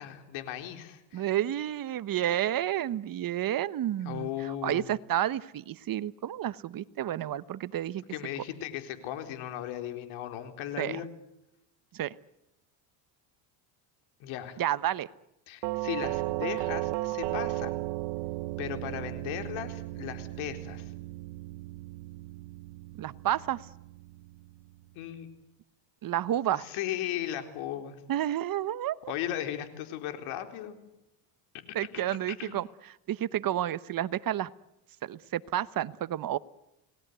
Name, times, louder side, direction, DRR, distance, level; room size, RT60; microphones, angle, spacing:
voice 1, 0.0-1.3 4.0-4.9 8.1-11.1 14.2-14.6 15.5-17.8 18.6-20.9 25.0-25.3 26.6-28.0 29.1-30.8 32.4-32.6, left 11 dB, 75° left, 7 dB, 4.2 m, -36 dB
voice 2, 1.1-8.0 10.8-11.0 11.9-12.1 14.6-15.1 23.0-23.7 26.0-26.7 28.1-29.1 31.7-32.7 33.1-34.5 35.0-36.4, right 12 dB, 45° right, 16 dB, 1.0 m, -30 dB
Doorbell, 15.6-24.5, right 20 dB, 75° right, 1.2 m, -35 dB
29.5 x 19.5 x 8.1 m, 0.88 s
supercardioid pair, 105°, 49 cm